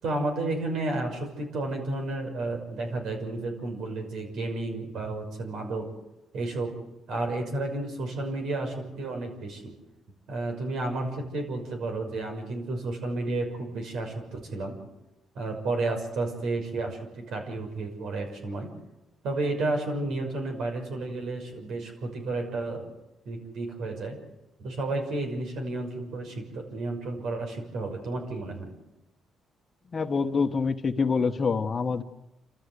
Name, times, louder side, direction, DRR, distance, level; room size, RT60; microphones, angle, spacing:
voice 1, 0.0-5.9 6.3-6.7 7.1-9.7 10.3-14.8 15.3-18.7 19.2-22.9 23.3-24.2 24.6-28.7, right 2 dB, 75° right, 3 dB, 6.0 m, -32 dB
voice 2, 29.9-32.0, left 5 dB, 40° left, 9 dB, 1.3 m, -26 dB
29.0 x 13.5 x 8.1 m, 0.94 s
cardioid pair, 90°, 0 cm